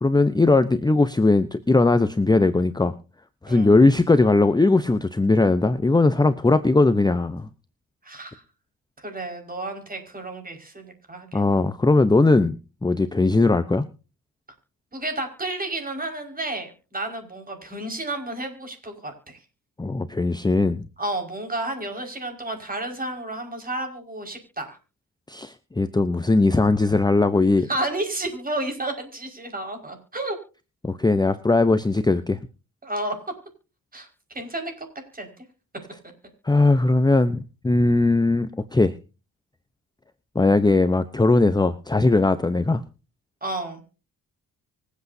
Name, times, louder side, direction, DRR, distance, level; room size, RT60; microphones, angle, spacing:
voice 1, 0.0-2.9 3.4-7.5 11.3-12.6 12.8-13.8 19.8-20.8 25.3-27.7 30.8-32.4 36.4-38.9 40.3-42.8, left 3 dB, 10° left, 11 dB, 0.8 m, -19 dB
voice 2, 8.0-8.4 9.0-11.5 14.9-19.4 21.0-24.8 27.7-30.4 32.8-33.2 33.9-34.1 34.3-34.9 35.1-35.3 43.4-43.8, right 2 dB, 25° right, 4 dB, 5.3 m, -31 dB
25.0 x 8.4 x 2.7 m, 0.33 s
cardioid pair, 85°, 34 cm